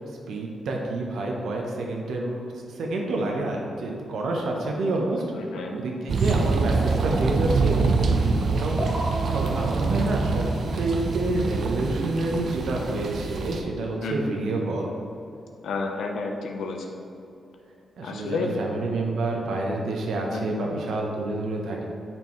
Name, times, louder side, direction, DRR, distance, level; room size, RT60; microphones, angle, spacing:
voice 1, 0.3-2.4 2.7-5.2 5.7-8.9 9.3-10.4 10.7-14.9 18.0-21.8, right 2 dB, 75° right, 0 dB, 0.8 m, -28 dB
voice 2, 5.3-5.7 14.0-14.4 15.6-16.9 18.0-18.6 20.3-20.7, left 4 dB, 75° left, 2 dB, 0.7 m, -31 dB
sound 1, 6.1-13.6, right 4 dB, 50° right, 0.4 m, -25 dB
sound 2, 6.7-12.1, right 1 dB, 10° right, 0.9 m, -37 dB
8.9 x 4.5 x 3.1 m, 2.7 s
wide cardioid pair, 175°, 0 cm